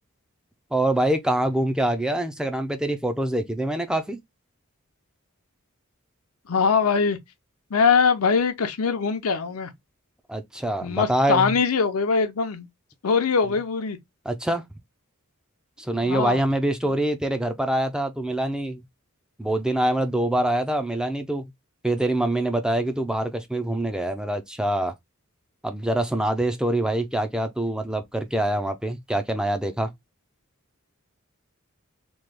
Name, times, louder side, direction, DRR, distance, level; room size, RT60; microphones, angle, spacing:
voice 1, 0.7-4.2 10.3-11.6 14.3-14.6 15.8-18.8 19.4-21.5 21.8-24.9 25.6-29.9, right 1 dB, 5° right, 0.4 m, -25 dB
voice 2, 6.5-7.2 7.7-9.7 10.8-12.7 13.0-14.0 16.0-16.4 16.8-16.9, left 5 dB, 90° left, 0.6 m, -22 dB
3.0 x 2.3 x 3.3 m
head